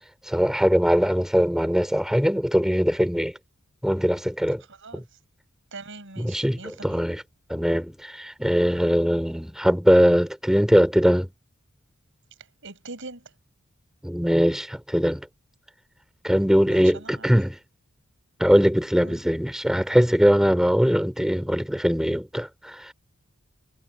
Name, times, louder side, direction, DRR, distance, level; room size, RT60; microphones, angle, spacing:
voice 1, 0.3-3.3 3.8-4.6 4.9-5.0 6.2-7.2 7.5-11.3 14.0-15.3 16.2-17.6 18.4-22.8, equal, ahead, 2.7 m, -21 dB
voice 2, 4.7-5.0 5.7-7.0 12.6-13.3 16.7-17.3 19.0-19.2, right 3 dB, 65° right, 7.2 m, -41 dB
head